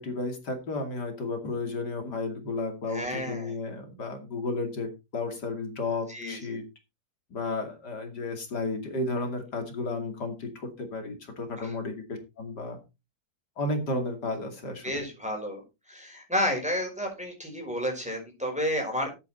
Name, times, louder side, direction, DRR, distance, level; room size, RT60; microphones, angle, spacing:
voice 1, 0.0-6.6 7.3-12.8 13.6-15.0, left 3 dB, 75° left, 5 dB, 3.2 m, -33 dB
voice 2, 2.9-3.5 6.1-6.6 11.6-11.7 14.8-15.6 15.9-19.2, equal, 5° right, 1 dB, 5.1 m, -31 dB
13.5 x 8.2 x 4.3 m, 0.27 s
omnidirectional pair, 1.8 m